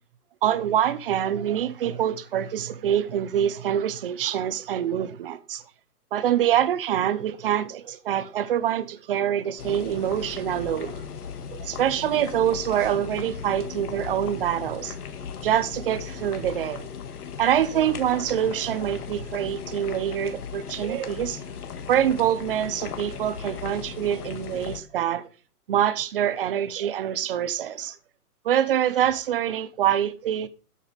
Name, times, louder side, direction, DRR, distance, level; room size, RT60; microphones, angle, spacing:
voice 1, 0.4-5.6 6.1-11.0 11.5-14.9 15.4-16.9 17.4-21.4 21.9-25.3 25.7-28.0 28.4-30.5, right 10 dB, 40° right, 0.8 m, -25 dB
sound 1, 9.6-24.8, left 7 dB, 80° left, 1.9 m, -37 dB
12.5 x 8.5 x 3.4 m
hypercardioid pair, 165°, 45 cm